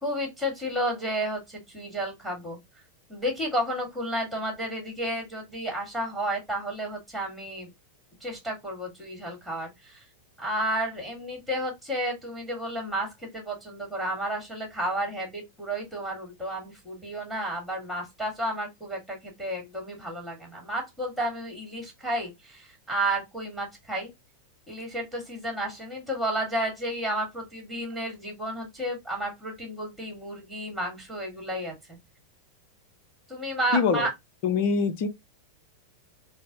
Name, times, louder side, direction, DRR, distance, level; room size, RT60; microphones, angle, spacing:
voice 1, 0.0-2.6 3.1-7.7 8.2-10.0 10.4-24.1 24.7-32.0 33.3-34.1, right 1 dB, ahead, 1.7 m, -32 dB
voice 2, 33.7-34.1 34.4-35.1, left 5 dB, 45° left, 0.6 m, -24 dB
4.6 x 2.0 x 2.6 m
figure-of-eight pair, 90°, 0 cm